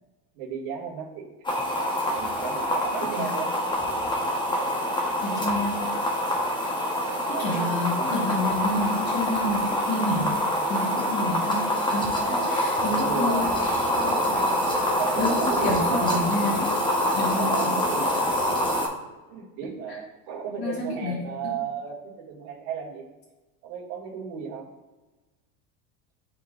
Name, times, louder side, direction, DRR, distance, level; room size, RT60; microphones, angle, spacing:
voice 1, 0.3-1.3 2.1-3.5 7.3-7.7 8.0-8.1 12.1-13.7 14.2-14.5 15.0-16.2 17.4-18.5 19.3-23.0 23.6-24.7, right 7 dB, 60° right, -3 dB, 2.0 m, -34 dB
sound 1, 1.4-18.9, equal, 10° left, 0.9 m, -25 dB
voice 2, 5.2-5.9 7.3-10.3 10.7-14.2 15.2-16.7 17.1-17.7 18.3-18.4 19.9-20.0 20.6-21.6, left 2 dB, 35° left, -7 dB, 1.5 m, -29 dB
9.9 x 3.8 x 2.5 m, 1.2 s
supercardioid pair, 125°, 42 cm